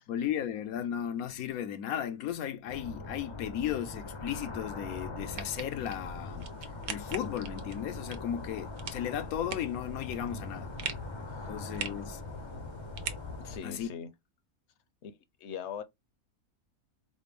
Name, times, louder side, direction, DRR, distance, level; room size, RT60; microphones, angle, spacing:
voice 1, 0.1-6.5 6.9-10.7 11.5-12.2 13.6-13.9, left 10 dB, 85° left, 1.1 m, -35 dB
sound 1, 2.7-13.6, left 3 dB, 40° left, 0.4 m, -42 dB
sound 2, 5.1-13.9, right 7 dB, 80° right, 1.2 m, -44 dB
voice 2, 13.4-14.1 15.0-15.8, left 8 dB, 60° left, 0.8 m, -41 dB
4.9 x 2.1 x 3.4 m
omnidirectional pair, 1.5 m